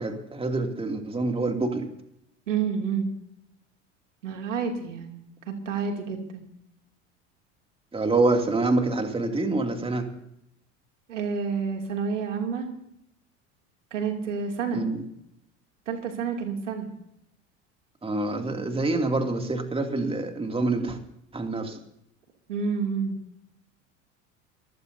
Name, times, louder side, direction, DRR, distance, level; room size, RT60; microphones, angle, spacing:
voice 1, 0.0-1.9 7.9-10.1 14.7-15.0 18.0-21.0 21.3-21.8, right 2 dB, 15° right, 4 dB, 2.6 m, -26 dB
voice 2, 2.5-3.1 4.2-6.5 11.1-12.7 13.9-14.9 15.9-16.9 22.5-23.2, right 5 dB, 85° right, 3 dB, 2.8 m, -29 dB
25.5 x 15.5 x 2.8 m, 0.76 s
hypercardioid pair, 80°, 36 cm